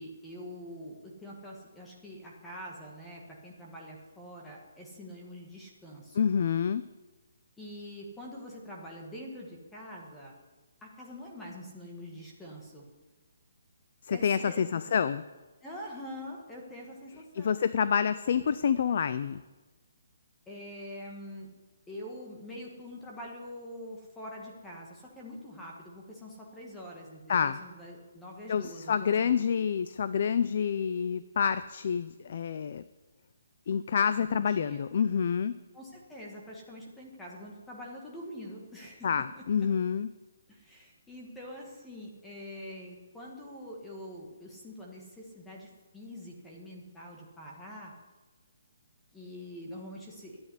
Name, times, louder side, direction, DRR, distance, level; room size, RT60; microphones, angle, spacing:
voice 1, 0.0-6.3 7.6-10.4 10.8-12.8 14.1-14.7 15.6-17.6 20.5-21.5 21.9-29.3 34.3-34.8 35.7-39.4 40.5-47.9 49.1-50.4, equal, 5° left, -2 dB, 1.5 m, -45 dB
voice 2, 6.1-6.8 14.0-15.2 17.3-19.4 27.3-27.6 28.5-32.8 33.7-35.6 39.0-40.1, left 7 dB, 35° left, 14 dB, 0.4 m, -28 dB
12.5 x 8.8 x 9.7 m, 1.2 s
hypercardioid pair, 180°, 0 cm